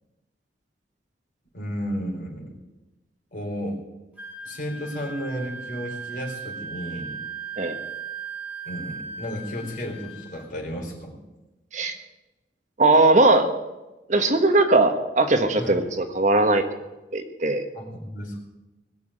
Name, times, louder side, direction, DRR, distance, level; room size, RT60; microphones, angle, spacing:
voice 1, 1.5-2.5 3.3-3.8 4.4-7.2 8.6-11.2 15.6-15.8 17.7-18.4, equal, 45° left, -1 dB, 4.5 m, -33 dB
Wind instrument woodwind instrument, 4.2-10.4, right 5 dB, 10° right, 4.1 m, -37 dB
voice 2, 12.8-13.5 14.1-16.6 17.1-17.7, right 2 dB, 40° right, 6 dB, 1.3 m, -19 dB
20.5 x 7.0 x 9.0 m, 1.0 s
head